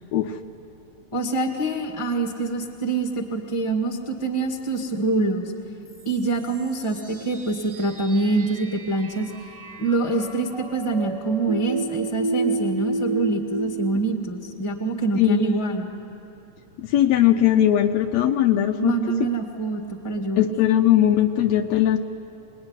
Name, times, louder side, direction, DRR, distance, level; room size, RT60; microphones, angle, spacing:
voice 1, 1.1-5.5 6.0-9.3 9.8-15.9 18.8-20.4, right 3 dB, 15° left, 3 dB, 1.5 m, -25 dB
sound 1, 5.9-14.0, right 3 dB, 35° right, 1.9 m, -31 dB
voice 2, 15.2-15.6 16.8-19.0 20.4-22.0, left 11 dB, 75° left, 6 dB, 1.9 m, -19 dB
26.5 x 20.0 x 9.8 m, 2.7 s
omnidirectional pair, 3.4 m